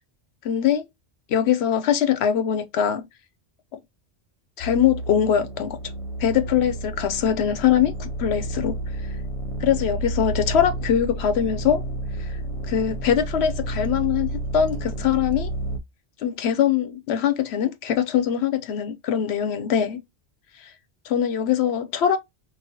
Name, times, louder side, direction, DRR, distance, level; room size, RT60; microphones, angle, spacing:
voice 1, 0.4-0.8 1.3-3.0 4.6-5.8 6.2-8.8 9.6-11.8 12.7-15.5 16.2-20.0 21.1-22.2, left 9 dB, 75° left, 0.8 m, -22 dB
sound 1, 4.6-15.8, right 1 dB, 45° left, 0.5 m, -31 dB
4.0 x 2.1 x 2.6 m
omnidirectional pair, 1.1 m